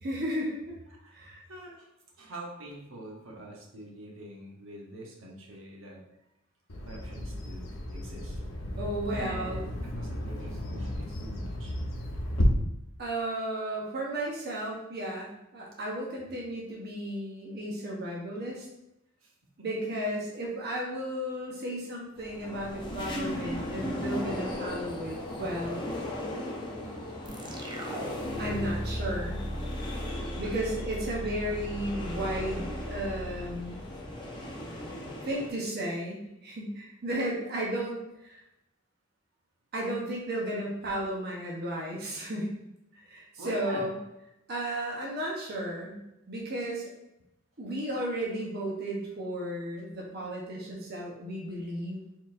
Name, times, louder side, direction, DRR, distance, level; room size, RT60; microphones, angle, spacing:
voice 1, 0.0-0.7 1.1-1.4 8.8-9.6 13.0-18.7 19.6-25.8 28.4-29.4 30.4-33.8 35.2-38.4 39.7-42.5 42.9-44.0 44.5-46.0 46.3-46.9 47.6-52.0, right 1 dB, 55° right, -3 dB, 0.9 m, -34 dB
voice 2, 0.9-1.2 1.5-1.9 2.2-6.0 6.8-7.6 7.9-8.4 9.1-11.7 19.2-19.3 19.6-19.7 29.7-30.2 43.4-43.9, right 1 dB, 75° right, -2 dB, 1.0 m, -44 dB
Bird vocalization bird call bird song, 6.7-12.4, left 1 dB, 80° left, 0.8 m, -35 dB
sound 1, 22.2-35.5, left 1 dB, 25° left, 0.8 m, -37 dB
sound 2, 27.2-34.5, equal, 25° right, 0.6 m, -38 dB
4.5 x 3.9 x 2.6 m, 0.87 s
head